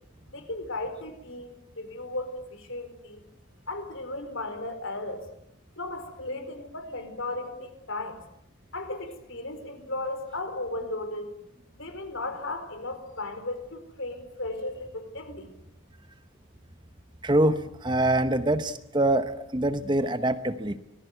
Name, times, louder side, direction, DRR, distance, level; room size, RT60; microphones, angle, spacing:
voice 1, 0.3-3.2 3.7-5.3 5.8-8.2 8.7-11.3 11.7-15.5, left 2 dB, 60° left, 9 dB, 4.4 m, -35 dB
voice 2, 17.2-20.8, right 1 dB, 20° right, 10 dB, 0.9 m, -25 dB
25.5 x 19.5 x 9.3 m, 0.81 s
head